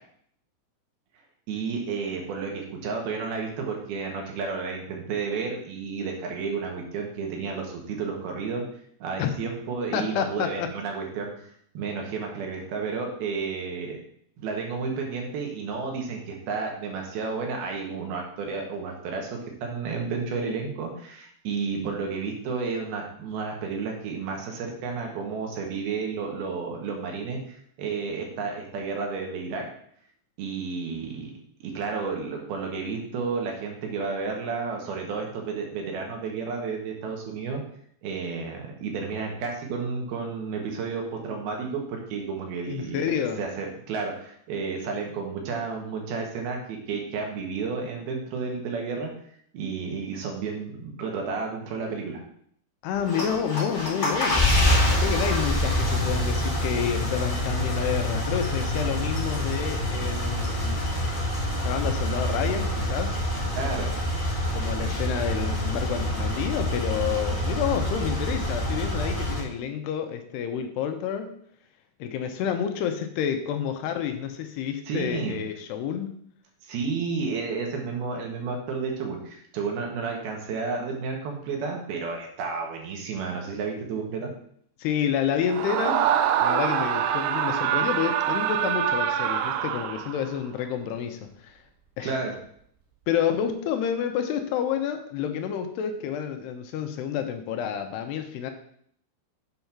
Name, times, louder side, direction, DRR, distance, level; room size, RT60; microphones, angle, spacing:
voice 1, 1.5-8.6 9.0-11.3 11.7-14.0 14.4-29.6 30.4-37.6 38.0-43.1 43.4-49.1 49.5-52.2 63.5-63.9 74.9-75.4 76.6-84.3 92.0-92.4, right 5 dB, 65° right, 1 dB, 3.3 m, -31 dB
voice 2, 9.9-10.7 42.7-43.4 52.8-54.6 55.0-60.9 61.6-63.2 64.5-71.3 72.0-76.2 84.8-86.1 86.4-91.6 92.0-92.2 93.1-98.5, left 8 dB, 80° left, 7 dB, 2.7 m, -29 dB
sound 1, 52.9-69.4, left 1 dB, 30° left, 0.9 m, -26 dB
Screaming, 85.5-90.3, right 10 dB, 90° right, 2.2 m, -25 dB
8.0 x 5.3 x 5.9 m, 0.65 s
omnidirectional pair, 5.1 m